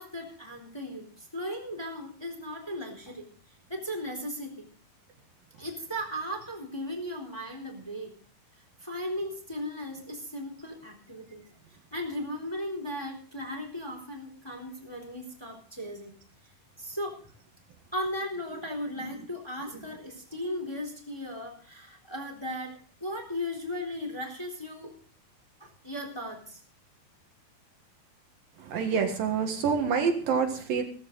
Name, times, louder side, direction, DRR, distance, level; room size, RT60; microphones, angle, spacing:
voice 1, 0.0-3.3 3.7-4.7 5.6-8.1 8.8-11.4 11.9-16.1 16.8-17.2 17.9-24.9 25.6-26.6, left 1 dB, 5° left, 2 dB, 3.2 m, -36 dB
voice 2, 28.6-30.8, right 6 dB, 70° right, 4 dB, 3.3 m, -27 dB
17.0 x 14.0 x 3.9 m, 0.44 s
omnidirectional pair, 4.4 m